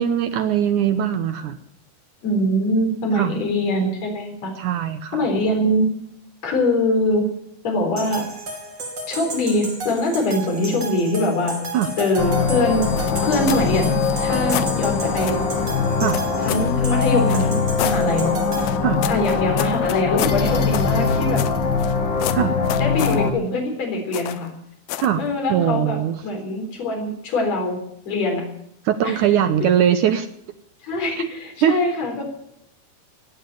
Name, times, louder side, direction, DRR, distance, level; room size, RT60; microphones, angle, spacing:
voice 1, 0.0-1.6 3.2-3.3 4.6-5.2 11.7-11.9 16.0-16.2 18.8-19.0 22.3-22.6 25.0-25.2 25.5-26.2 28.9-30.3 31.6-31.8, right 9 dB, 75° right, 9 dB, 2.0 m, -20 dB
voice 2, 2.2-4.5 5.1-5.8 6.4-7.2 7.6-8.2 9.1-11.6 12.0-12.9 13.2-13.9 14.2-15.4 16.4-18.4 19.1-21.4 22.8-24.5 25.2-27.8 28.1-28.4 29.0-29.2 30.8-32.2, left 1 dB, 45° left, 1 dB, 5.0 m, -23 dB
sound 1, 8.0-18.7, right 2 dB, 30° right, 3.2 m, -33 dB
sound 2, 12.2-23.3, left 5 dB, 60° left, 1.2 m, -22 dB
sound 3, 13.0-13.7 14.0-14.7 15.2-15.4 16.1-16.7 17.3-18.0 18.6-21.9 22.2-23.2 24.1-24.5 24.9-25.2, left 14 dB, 80° left, 2.6 m, -30 dB
17.5 x 8.9 x 9.0 m, 0.75 s
omnidirectional pair, 4.4 m